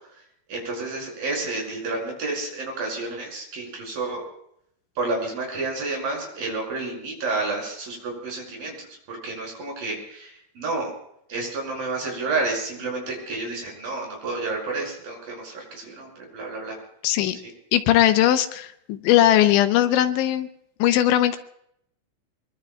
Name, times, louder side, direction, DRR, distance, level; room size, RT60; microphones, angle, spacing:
voice 1, 0.5-4.2 5.0-10.9 11.3-16.8, right 3 dB, 45° right, 0 dB, 7.6 m, -30 dB
voice 2, 17.0-17.4 17.7-20.5 20.8-21.4, left 12 dB, 80° left, 9 dB, 2.9 m, -19 dB
24.0 x 23.5 x 2.3 m, 0.73 s
omnidirectional pair, 5.8 m